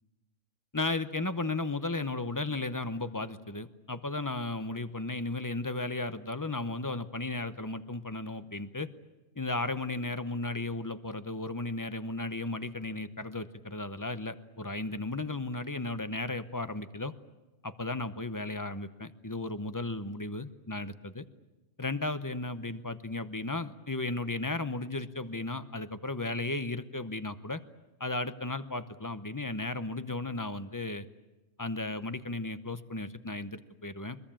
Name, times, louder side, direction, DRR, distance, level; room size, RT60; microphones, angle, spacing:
voice 1, 0.7-8.9 9.4-17.1 17.6-21.3 21.8-27.6 28.0-31.1 31.6-34.2, left 2 dB, 20° left, 12 dB, 0.7 m, -35 dB
23.0 x 21.5 x 8.9 m, 1.1 s
omnidirectional pair, 1.3 m